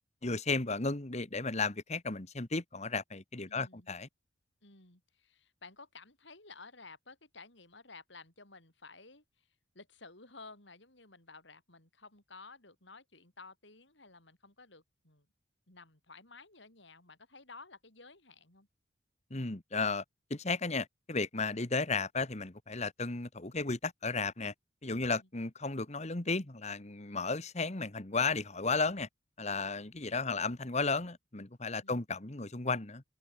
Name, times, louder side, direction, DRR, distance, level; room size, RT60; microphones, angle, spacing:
voice 1, 0.2-4.1 19.3-20.0 20.3-24.5 24.8-29.1 29.4-33.0, left 4 dB, 35° left, 1.6 m, -34 dB
voice 2, 3.5-3.9 4.6-9.5 9.7-15.3 15.7-18.7 25.1-25.3 30.3-30.6 31.8-32.0, left 3 dB, 65° left, 7.4 m, -54 dB
head